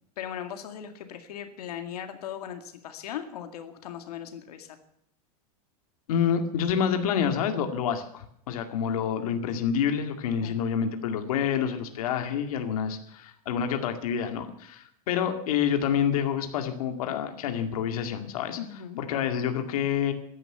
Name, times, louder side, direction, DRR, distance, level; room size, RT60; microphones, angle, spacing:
voice 1, 0.2-4.8 10.4-10.5 18.6-19.0, left 9 dB, 90° left, 7 dB, 2.1 m, -38 dB
voice 2, 6.1-18.6 19.0-20.1, left 8 dB, 70° left, 6 dB, 2.2 m, -28 dB
15.5 x 11.0 x 7.9 m, 0.72 s
supercardioid pair, 180°, 19 cm